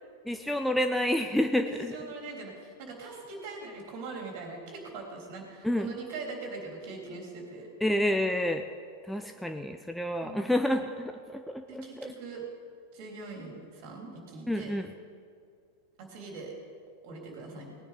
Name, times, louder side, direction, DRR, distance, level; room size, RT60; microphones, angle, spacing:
voice 1, 0.3-2.0 5.6-5.9 7.8-8.6 9.0-12.1 14.5-14.9, left 1 dB, ahead, 6 dB, 0.6 m, -29 dB
voice 2, 1.6-7.7 10.2-10.6 11.7-12.4 12.9-14.7 16.0-16.5 17.0-17.8, right 3 dB, 45° right, 0 dB, 3.5 m, -42 dB
19.0 x 10.0 x 5.1 m, 2.2 s
figure-of-eight pair, 90°, 0 cm